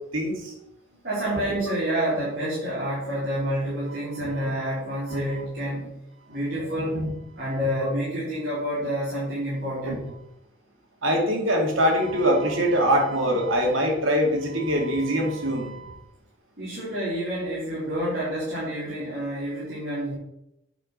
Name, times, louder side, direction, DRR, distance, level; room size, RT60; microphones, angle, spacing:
voice 1, 0.1-0.5 1.5-1.8 4.2-4.3 5.1-5.2 6.9-7.1 9.9-10.0 11.0-15.9, equal, 80° right, 1 dB, 2.6 m, -23 dB
voice 2, 1.0-6.0 6.3-7.0 7.4-10.0 16.6-20.1, equal, 50° right, -9 dB, 3.8 m, -28 dB
8.9 x 5.2 x 6.6 m, 0.86 s
head